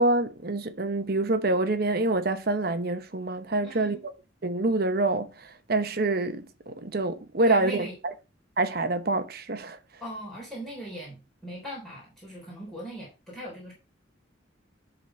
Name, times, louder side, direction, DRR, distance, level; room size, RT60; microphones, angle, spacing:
voice 1, 0.0-4.1 4.4-8.1 8.6-9.8, right 2 dB, 50° right, 0.9 m, -26 dB
voice 2, 3.6-4.0 7.5-8.0 10.0-13.7, right 1 dB, ahead, 3.5 m, -39 dB
11.0 x 4.0 x 5.6 m
head